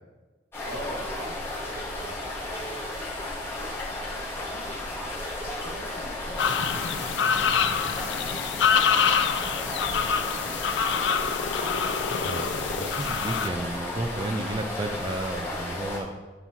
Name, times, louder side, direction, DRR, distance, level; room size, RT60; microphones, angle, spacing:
sound 1, 0.5-16.0, left 1 dB, 15° left, 1.9 m, -34 dB
voice 1, 0.6-1.5 1.9-2.3 3.4-11.9, equal, 70° right, -4 dB, 2.3 m, -45 dB
sound 2, 6.4-13.5, left 6 dB, 75° left, 0.5 m, -26 dB
voice 2, 12.2-16.1, right 1 dB, 25° right, 3 dB, 0.5 m, -32 dB
11.0 x 4.4 x 4.5 m, 1.3 s
head